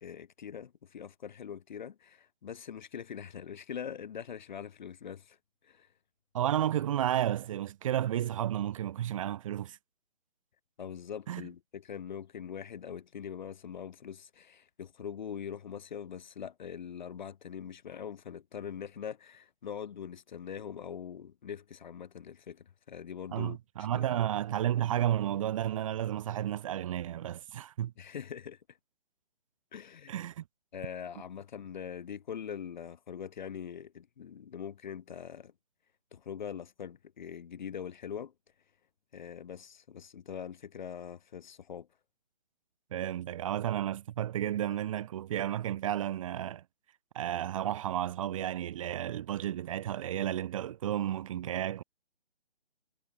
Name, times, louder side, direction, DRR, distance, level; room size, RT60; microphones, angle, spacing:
voice 1, 0.0-5.4 5.6-5.9 10.8-24.3 28.0-28.6 29.7-30.1 30.7-35.5 36.1-38.3 39.1-41.9, left 8 dB, 50° left, 1.0 m, -42 dB
voice 2, 6.3-9.8 11.3-11.4 23.3-27.9 30.1-30.4 42.9-46.6 47.1-51.8, right 11 dB, 35° right, 1.4 m, -32 dB
figure-of-eight pair, 145°, 30 cm